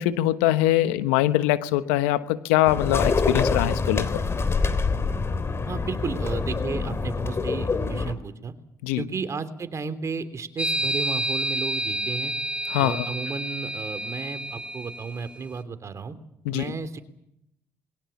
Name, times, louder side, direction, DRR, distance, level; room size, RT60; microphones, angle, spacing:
voice 1, 0.0-4.2 8.8-9.0 12.7-13.0 16.5-16.6, left 14 dB, 90° left, 13 dB, 1.1 m, -23 dB
sound 1, 2.7-8.1, left 4 dB, 40° left, 3.2 m, -26 dB
voice 2, 5.7-8.5 9.0-12.3 12.8-16.2 16.5-17.0, right 5 dB, 45° right, 10 dB, 3.2 m, -33 dB
sound 2, 10.6-15.3, right 2 dB, 15° right, 2.4 m, -29 dB
27.5 x 22.0 x 7.2 m, 0.80 s
hypercardioid pair, 50°, 7 cm